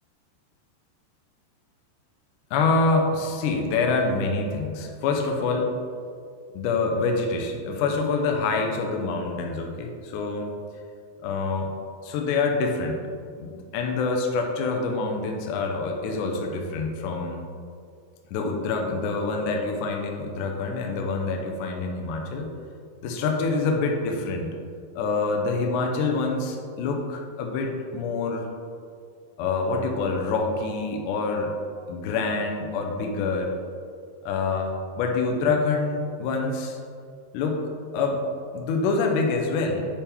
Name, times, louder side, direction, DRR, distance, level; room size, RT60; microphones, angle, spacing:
voice 1, 2.5-5.7 6.5-10.5 11.2-11.7 12.0-13.1 13.4-17.4 18.3-22.5 23.0-24.5 24.9-28.5 29.4-31.5 31.9-33.5 34.2-36.8 37.3-37.7 37.9-38.2 38.5-40.0, left 3 dB, 85° left, 2 dB, 1.8 m, -26 dB
8.8 x 3.6 x 4.3 m, 2.2 s
omnidirectional pair, 4.6 m